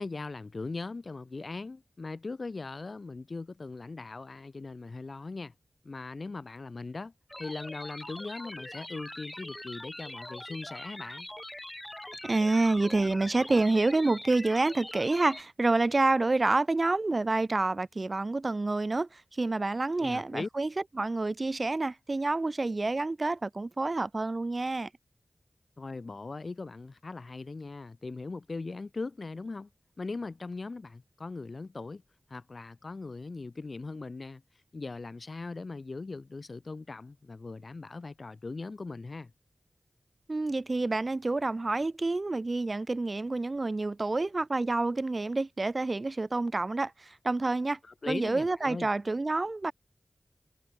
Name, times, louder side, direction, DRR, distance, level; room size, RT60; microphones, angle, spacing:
voice 1, 0.0-5.5 5.8-7.1 7.4-11.3 20.0-20.5 25.8-29.7 30.0-32.0 32.3-34.4 34.7-39.3 47.8-48.9, left 3 dB, 50° left, 0.7 m, -39 dB
sound 1, 7.3-15.4, left 1 dB, 15° left, 0.7 m, -43 dB
voice 2, 12.2-20.7 21.0-24.9 40.3-47.8 48.1-49.7, right 2 dB, 40° right, 0.8 m, -28 dB
wide cardioid pair, 85°, 0 cm